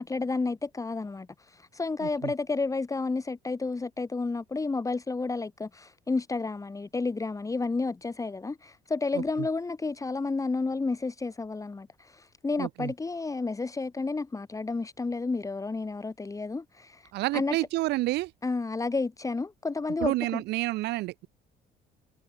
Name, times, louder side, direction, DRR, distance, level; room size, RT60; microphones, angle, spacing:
voice 1, 0.0-17.6 18.4-20.4, left 3 dB, 20° left, 3.5 m, -31 dB
voice 2, 2.0-2.3 9.1-9.2 12.6-12.9 17.1-18.3 20.0-21.3, right 18 dB, 85° right, 4.6 m, -29 dB
cardioid pair, 110°, 17 cm